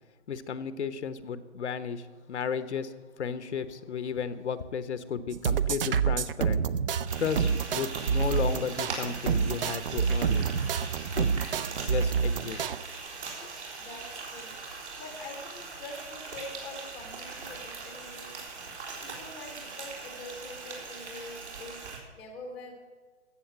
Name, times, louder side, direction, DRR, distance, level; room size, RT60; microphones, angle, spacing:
voice 1, 0.3-2.9 3.2-6.6 7.2-10.4 11.1-11.3 11.7-12.7 13.4-13.5, left 6 dB, 70° left, 13 dB, 1.0 m, -34 dB
sound 1, 5.3-12.8, right 6 dB, 50° right, 0.6 m, -28 dB
Frying (food), 7.1-22.0, right 4 dB, 70° right, 4.1 m, -41 dB
voice 2, 13.8-14.6 15.0-18.4 19.0-21.8 22.1-22.7, left 2 dB, ahead, 3 dB, 0.8 m, -44 dB
14.5 x 7.7 x 7.5 m, 1.4 s
hypercardioid pair, 160°, 36 cm